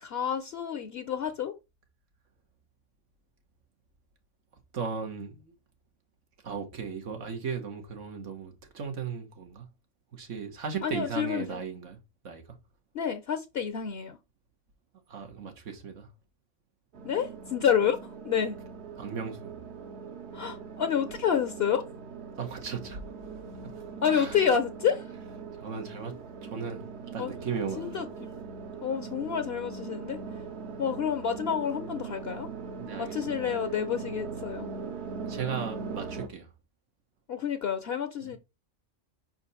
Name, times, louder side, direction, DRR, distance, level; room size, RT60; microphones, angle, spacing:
voice 1, 0.0-1.5 10.8-11.6 12.9-14.2 17.0-18.0 18.2-18.6 20.3-21.8 24.0-25.1 27.2-27.4 27.8-28.1 28.8-30.2 30.8-32.5 33.0-34.7 37.3-38.4, left 8 dB, 60° left, 0.8 m, -29 dB
voice 2, 4.7-5.5 6.4-9.7 10.1-12.0 12.2-12.4 15.1-16.1 19.0-19.5 22.4-23.0 23.6-24.4 25.6-28.1 32.8-33.5 35.3-36.5 38.2-38.4, right 6 dB, 90° right, 1.6 m, -37 dB
sound 1, 16.9-36.3, right 5 dB, 65° right, 1.2 m, -41 dB
5.6 x 4.4 x 4.1 m
omnidirectional pair, 1.3 m